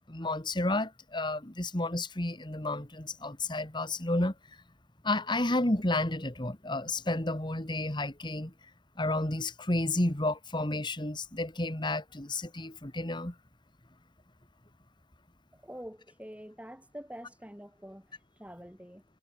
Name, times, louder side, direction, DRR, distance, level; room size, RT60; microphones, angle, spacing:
voice 1, 0.0-4.3 5.0-8.5 9.0-13.3, left 2 dB, 25° left, 2.0 m, -31 dB
voice 2, 15.5-19.0, equal, 5° right, 4.9 m, -46 dB
head